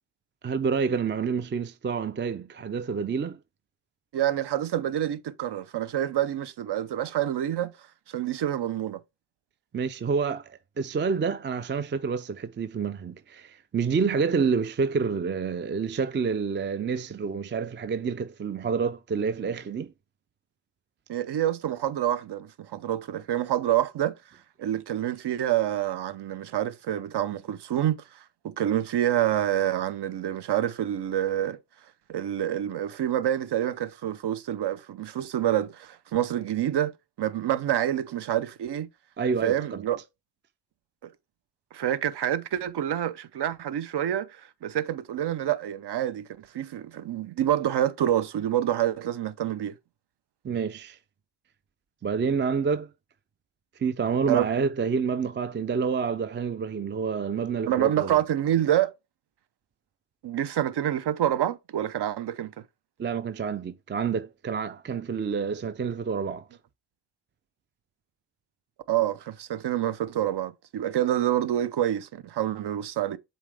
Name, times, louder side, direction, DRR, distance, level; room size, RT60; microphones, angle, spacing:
voice 1, 0.4-3.4 9.7-19.9 39.2-39.8 50.4-51.0 52.0-52.9 53.8-58.2 63.0-66.5, right 5 dB, 25° right, 0.4 m, -28 dB
voice 2, 4.1-7.7 8.1-9.0 21.1-24.1 24.6-28.0 28.4-31.6 32.1-36.9 37.2-38.9 39.4-40.0 41.7-44.3 44.6-49.8 54.3-54.5 57.7-58.9 60.2-62.5 68.9-73.2, right 11 dB, 60° right, 0.7 m, -27 dB
7.2 x 4.2 x 3.3 m
cardioid pair, 70°, 46 cm